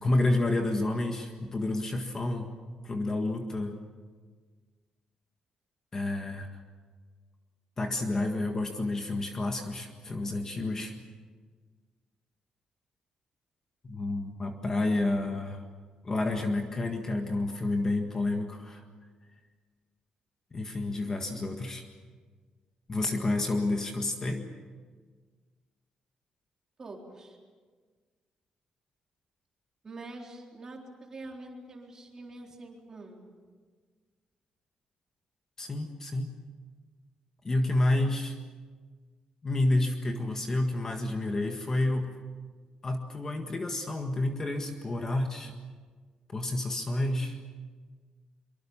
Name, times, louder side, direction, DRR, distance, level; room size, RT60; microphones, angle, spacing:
voice 1, 0.0-2.5 2.8-3.8 5.9-6.5 7.8-10.9 13.8-15.6 16.0-18.8 20.5-21.9 22.9-24.5 35.6-36.3 37.4-38.4 39.4-42.1 42.8-45.5 46.3-47.4, left 2 dB, 25° left, 4 dB, 1.7 m, -29 dB
voice 2, 26.8-27.4 29.8-33.2, right 2 dB, 25° right, 0 dB, 3.9 m, -45 dB
24.5 x 24.0 x 7.3 m, 1.5 s
cardioid pair, 170°, 2 cm